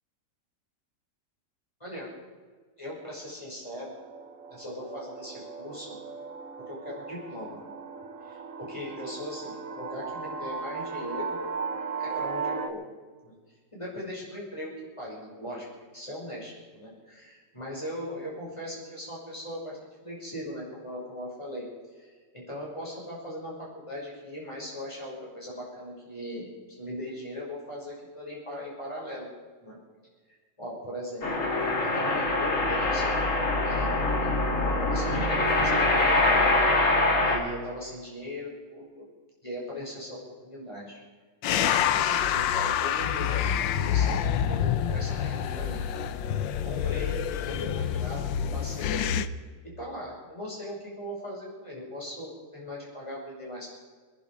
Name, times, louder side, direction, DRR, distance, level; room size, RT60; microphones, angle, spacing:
voice 1, 2.8-3.9 4.5-6.0 6.6-7.6 8.2-11.4 12.0-12.8 13.3-13.4 13.7-15.7 15.9-21.6 21.9-29.3 29.6-29.8 30.6-31.2 31.9-34.3 34.6-36.2 37.2-39.1 39.4-41.0 41.5-45.8 46.6-49.2 49.8-53.8, equal, 15° left, -5 dB, 6.0 m, -39 dB
sound 1, 3.7-12.7, right 5 dB, 50° right, 1.3 m, -37 dB
sound 2, 31.2-37.4, left 2 dB, 45° left, 2.4 m, -24 dB
sound 3, 41.4-49.3, left 9 dB, 85° left, 1.4 m, -27 dB
26.0 x 11.0 x 4.8 m, 1.5 s
omnidirectional pair, 2.0 m